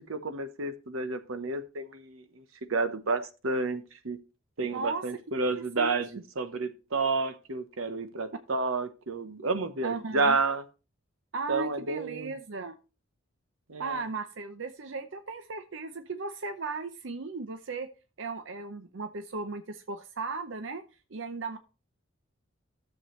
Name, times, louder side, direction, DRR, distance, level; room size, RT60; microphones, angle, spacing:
voice 1, 0.0-2.4 2.7-4.2 4.6-10.6 11.5-12.3 13.7-14.0, right 3 dB, 90° right, 10 dB, 1.0 m, -30 dB
voice 2, 4.7-5.0 5.8-5.9 9.8-10.4 11.3-12.8 13.8-17.9 18.2-20.8 21.1-21.6, right 3 dB, 65° right, 9 dB, 0.7 m, -36 dB
13.0 x 7.1 x 3.1 m, 0.32 s
head